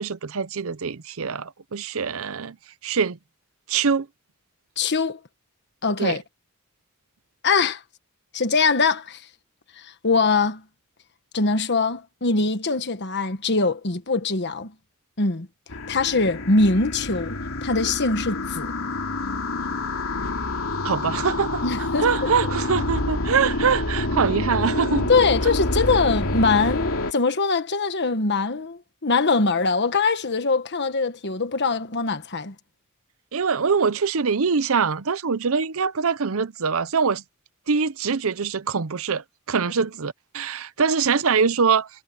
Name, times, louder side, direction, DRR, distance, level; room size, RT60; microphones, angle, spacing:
voice 1, 0.0-2.6 2.8-3.2 3.7-4.1 6.0-6.2 20.8-21.6 22.0-25.1 33.3-37.2 37.7-41.9, right 5 dB, 65° right, 0.7 m, -23 dB
voice 2, 4.8-5.2 5.8-6.2 7.4-7.8 8.3-9.2 9.8-10.6 11.3-14.7 15.2-15.5 15.9-18.7 21.6-22.3 25.1-32.5, left 4 dB, 50° left, 1.4 m, -22 dB
sound 1, 15.7-27.1, left 2 dB, 65° left, 3.5 m, -27 dB
head